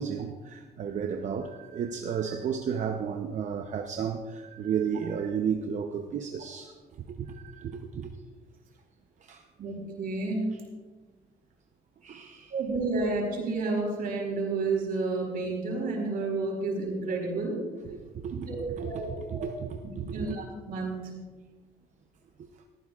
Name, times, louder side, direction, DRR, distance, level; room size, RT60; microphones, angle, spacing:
voice 1, 0.0-6.7 7.1-8.1 9.2-9.4 12.0-12.5 17.9-18.5 18.8-20.4, right 7 dB, 45° right, 0.8 m, -33 dB
voice 2, 9.6-10.4 12.5-17.5 18.5-19.1 19.4-19.5 20.1-21.0, right 3 dB, 60° right, 4.4 m, -30 dB
18.0 x 14.5 x 2.4 m
cardioid pair, 110°, 17 cm